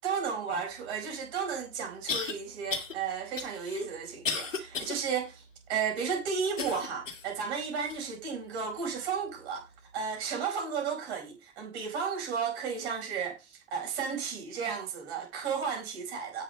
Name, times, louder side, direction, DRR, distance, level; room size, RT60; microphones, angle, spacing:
voice 1, 0.0-5.4 5.7-9.7 9.9-16.4, right 6 dB, 55° right, 5.0 m, -33 dB
sound 1, 1.1-1.2 2.1-2.3 2.7-2.9 3.4-5.0 5.4-5.5 6.6-7.3 7.9-8.0 8.8-8.9, left 5 dB, 80° left, 2.1 m, -34 dB
17.5 x 6.3 x 2.2 m
figure-of-eight pair, 90°, 38 cm